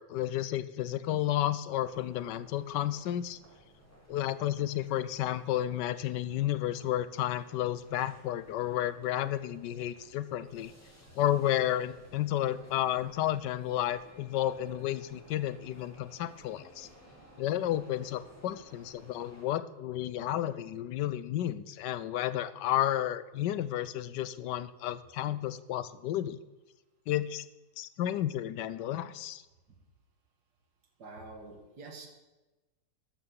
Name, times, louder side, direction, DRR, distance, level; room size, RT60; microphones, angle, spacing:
voice 1, 0.0-3.4 4.1-10.7 11.1-16.9 17.4-26.4 27.1-27.5 27.8-29.4, left 12 dB, 80° left, 14 dB, 1.3 m, -32 dB
sound 1, 1.8-19.5, equal, 10° left, 2.3 m, -57 dB
voice 2, 31.0-32.1, right 3 dB, 70° right, 2 dB, 2.3 m, -47 dB
12.5 x 6.1 x 6.9 m, 1.1 s
omnidirectional pair, 1.8 m